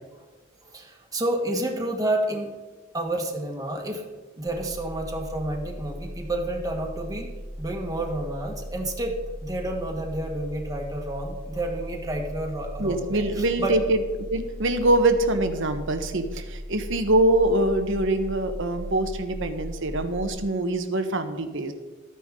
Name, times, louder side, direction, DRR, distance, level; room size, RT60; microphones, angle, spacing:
voice 1, 0.6-2.5 2.9-4.0 4.4-7.3 7.6-9.1 9.4-13.7, right 1 dB, 20° right, 0 dB, 1.7 m, -30 dB
sound 1, 4.5-20.3, equal, 15° left, 1.2 m, -38 dB
voice 2, 12.8-14.0 14.3-21.7, right 2 dB, 65° right, 8 dB, 1.2 m, -24 dB
13.5 x 9.5 x 3.8 m, 1.2 s
head